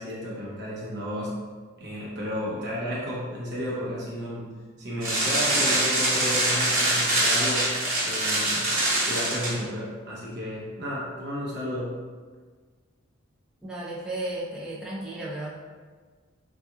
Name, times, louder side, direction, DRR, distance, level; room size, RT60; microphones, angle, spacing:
voice 1, 0.0-1.3 1.8-4.5 4.8-8.7 9.0-12.0, equal, 55° right, -6 dB, 0.8 m, -32 dB
sound 1, 5.0-9.5, right 1 dB, 80° right, 1.2 m, -24 dB
voice 2, 13.6-15.5, right 1 dB, 5° right, -7 dB, 0.7 m, -34 dB
2.8 x 2.4 x 3.5 m, 1.5 s
head